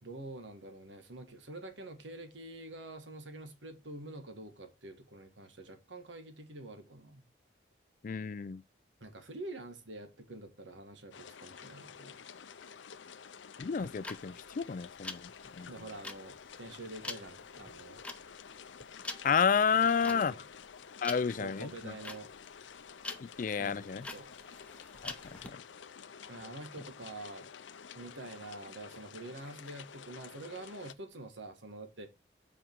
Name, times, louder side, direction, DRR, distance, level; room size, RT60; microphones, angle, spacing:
voice 1, 0.0-7.2 9.0-12.2 15.7-18.0 19.7-20.4 21.4-22.3 23.6-24.3 26.3-27.5 27.9-32.1, right 2 dB, 90° right, 1.5 m, -46 dB
voice 2, 8.0-8.6 13.6-15.7 19.2-20.3 21.0-21.9 23.2-24.1 25.0-25.6, left 6 dB, 45° left, 0.4 m, -31 dB
sound 1, 11.1-30.9, left 7 dB, 85° left, 0.6 m, -51 dB
sound 2, 13.7-25.5, left 2 dB, 5° left, 0.8 m, -45 dB
7.9 x 5.0 x 4.5 m
head